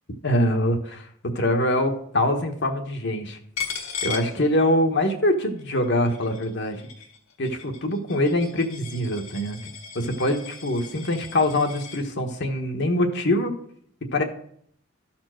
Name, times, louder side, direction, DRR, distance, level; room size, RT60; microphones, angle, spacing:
voice 1, 0.2-1.1 1.3-3.4 4.0-6.8 7.4-9.6 9.9-13.5 14.1-14.2, left 1 dB, 55° left, 4 dB, 1.2 m, -24 dB
Coin (dropping), 3.6-5.1 5.4-12.0, left 6 dB, 75° left, 2.0 m, -37 dB
13.0 x 4.4 x 6.3 m, 0.65 s
head